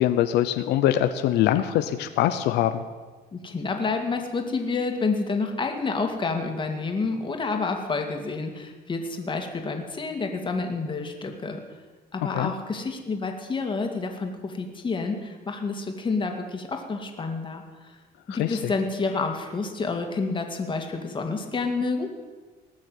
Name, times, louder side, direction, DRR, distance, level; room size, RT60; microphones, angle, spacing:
voice 1, 0.0-2.8 12.3-12.5 18.3-18.7, left 12 dB, 85° left, 9 dB, 0.7 m, -23 dB
voice 2, 3.3-11.6 12.1-17.9 18.3-22.1, left 4 dB, 30° left, 4 dB, 2.4 m, -29 dB
19.0 x 6.5 x 9.3 m, 1.3 s
cardioid pair, 110°, 17 cm